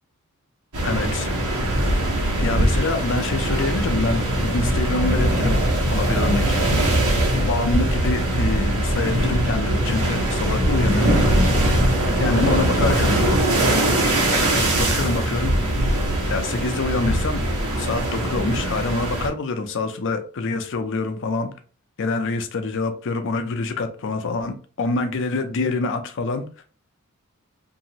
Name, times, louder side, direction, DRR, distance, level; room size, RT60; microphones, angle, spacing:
sound 1, 0.7-19.3, right 1 dB, 80° right, 1.1 m, -21 dB
voice 1, 0.8-1.3 2.4-5.6 5.9-6.6 7.3-11.2 12.1-13.4 14.4-15.5 16.3-17.4 17.8-21.5 22.0-26.4, left 3 dB, 60° left, 0.5 m, -26 dB
2.9 x 2.7 x 2.8 m
head